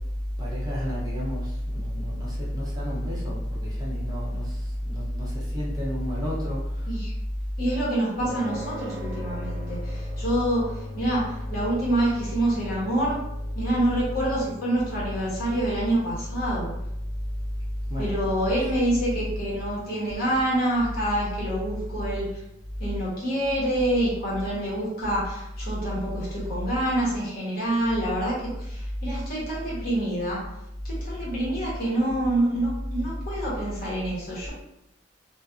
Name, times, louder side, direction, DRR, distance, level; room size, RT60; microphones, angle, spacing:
voice 1, 0.4-6.9 17.9-18.2, equal, 20° right, -6 dB, 0.6 m, -29 dB
voice 2, 7.6-13.2 13.5-16.7 18.0-22.3 22.8-30.4 30.8-34.5, right 1 dB, 50° left, -6 dB, 1.1 m, -27 dB
sound 1, 8.2-24.7, left 1 dB, 75° right, 0.6 m, -43 dB
2.5 x 2.4 x 2.4 m, 0.84 s
head